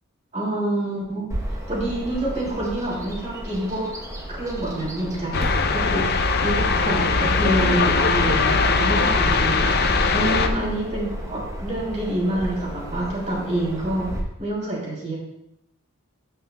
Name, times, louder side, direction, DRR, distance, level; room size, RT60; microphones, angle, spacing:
voice 1, 0.3-1.3 1.7-3.9 4.3-14.1 14.4-15.2, right 1 dB, 35° right, -5 dB, 3.0 m, -27 dB
Bird vocalization bird call bird song, 1.3-14.2, right 1 dB, 15° right, 0.9 m, -32 dB
sound 1, 5.3-10.5, left 4 dB, 45° left, 0.5 m, -21 dB
13.5 x 5.7 x 2.2 m, 0.86 s
head